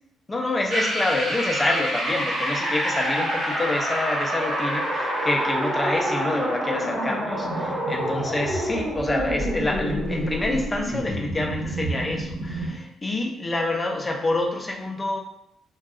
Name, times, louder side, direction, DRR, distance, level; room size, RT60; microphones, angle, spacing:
voice 1, 0.3-15.2, left 2 dB, 20° left, 1 dB, 0.5 m, -27 dB
sound 1, 0.7-12.8, right 1 dB, 35° right, 1.1 m, -27 dB
2.5 x 2.3 x 2.4 m, 0.77 s
cardioid pair, 90°, 0 cm